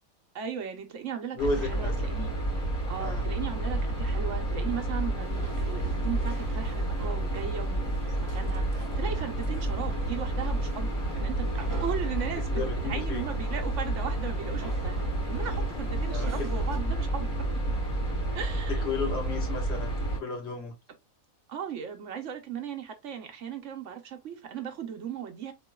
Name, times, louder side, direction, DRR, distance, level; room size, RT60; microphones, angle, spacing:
voice 1, 0.3-2.3 2.9-17.3 18.3-18.9 21.5-25.5, right 7 dB, 65° right, 1.1 m, -37 dB
voice 2, 1.4-2.1 3.0-3.3 12.5-13.2 16.1-16.5 18.7-20.8, left 3 dB, 55° left, 1.3 m, -33 dB
sound 1, 1.4-20.2, right 1 dB, 5° left, 2.2 m, -30 dB
sound 2, 5.2-16.8, right 2 dB, 25° right, 0.4 m, -46 dB
3.8 x 2.9 x 2.2 m
omnidirectional pair, 1.5 m